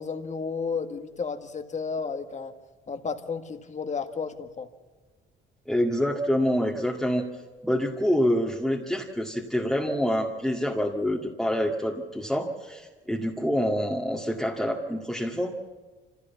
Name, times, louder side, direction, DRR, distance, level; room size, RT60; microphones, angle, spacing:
voice 1, 0.0-2.5 2.9-4.7, left 5 dB, 35° left, 6 dB, 1.9 m, -32 dB
voice 2, 5.7-7.3 7.6-15.5, equal, ahead, -2 dB, 2.0 m, -26 dB
26.0 x 16.0 x 7.2 m, 1.3 s
cardioid pair, 90°, 20 cm